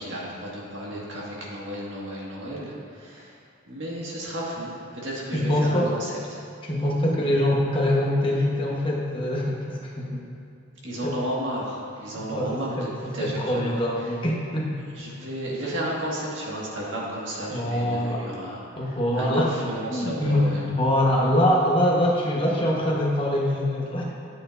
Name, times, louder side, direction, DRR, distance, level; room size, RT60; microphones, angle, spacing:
voice 1, 0.0-3.4 3.7-6.4 10.8-14.1 14.9-20.6, right 1 dB, 70° right, -5 dB, 1.9 m, -33 dB
voice 2, 5.3-5.9 6.6-10.2 11.0-11.2 12.3-12.9 13.2-14.8 17.5-18.2 18.8-19.5 19.9-24.0, left 1 dB, 25° left, -3 dB, 1.1 m, -24 dB
10.0 x 8.6 x 2.6 m, 2.5 s
head